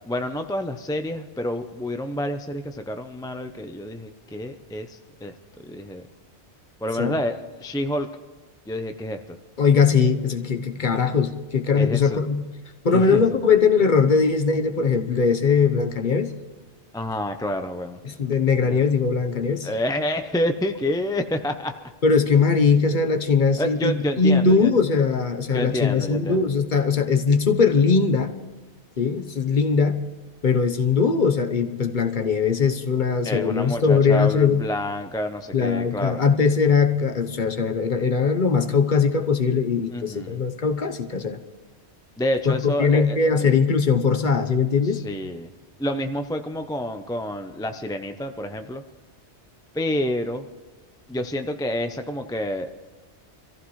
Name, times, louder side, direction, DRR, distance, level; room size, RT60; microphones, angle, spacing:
voice 1, 0.0-5.3 5.6-6.0 6.8-8.1 8.7-9.2 11.8-12.2 12.9-13.2 16.9-18.0 18.6-18.8 19.6-21.7 23.6-24.7 25.5-26.5 33.2-36.2 39.9-40.4 42.2-43.5 44.9-45.5 45.8-48.8 49.7-50.5 51.1-52.7, left 1 dB, 5° left, 7 dB, 0.4 m, -28 dB
voice 2, 9.6-12.4 12.8-16.3 18.0-19.7 22.0-28.3 29.0-30.0 30.4-34.6 35.5-41.4 42.4-45.0, left 5 dB, 45° left, 6 dB, 1.1 m, -20 dB
25.5 x 15.0 x 3.2 m, 1.3 s
omnidirectional pair, 1.2 m